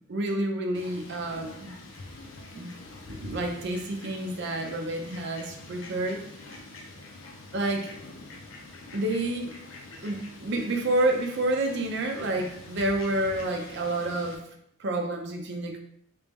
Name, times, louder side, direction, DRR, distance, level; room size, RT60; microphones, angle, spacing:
voice 1, 0.1-1.7 2.5-2.7 3.1-6.2 7.5-8.0 8.9-9.6 10.0-14.4 14.8-15.8, right 1 dB, 55° right, 2 dB, 0.5 m, -29 dB
Fowl, 0.7-14.4, left 2 dB, 65° left, 0.7 m, -45 dB
3.4 x 3.0 x 3.4 m, 0.70 s
head